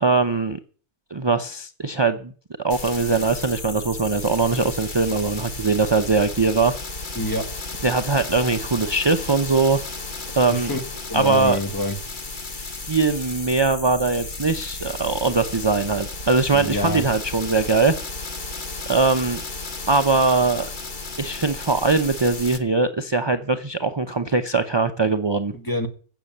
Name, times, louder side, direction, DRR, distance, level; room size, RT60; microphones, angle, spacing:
voice 1, 0.0-0.6 1.1-2.3 2.6-6.7 7.8-9.8 10.3-10.7 11.1-11.6 12.9-18.0 18.9-19.4 19.9-20.7 21.2-25.5, right 3 dB, 35° right, 0.4 m, -21 dB
sound 1, 2.7-22.6, left 3 dB, 35° left, 1.2 m, -34 dB
voice 2, 7.1-7.5 10.5-10.8 11.1-12.0 16.5-17.0 25.5-25.9, left 1 dB, 15° left, 1.6 m, -26 dB
15.0 x 6.9 x 8.9 m
omnidirectional pair, 1.5 m